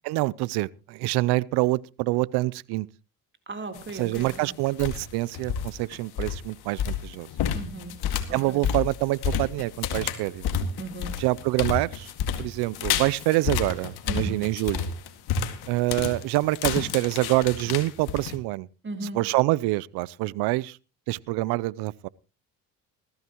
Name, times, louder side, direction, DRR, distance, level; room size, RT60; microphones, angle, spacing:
voice 1, 0.0-2.9 3.9-7.3 8.3-10.5 11.2-12.1 12.4-14.9 15.7-18.7 19.1-20.8 21.1-22.1, right 20 dB, 80° right, 0.6 m, -26 dB
voice 2, 3.5-4.5 7.5-8.6 10.8-11.2 14.1-14.4 18.8-19.2, right 2 dB, 30° right, 3.5 m, -37 dB
sound 1, 3.8-4.4 4.7-5.1 5.3-18.4, left 7 dB, 75° left, 2.1 m, -30 dB
20.0 x 14.5 x 3.0 m
supercardioid pair, 75°, 39 cm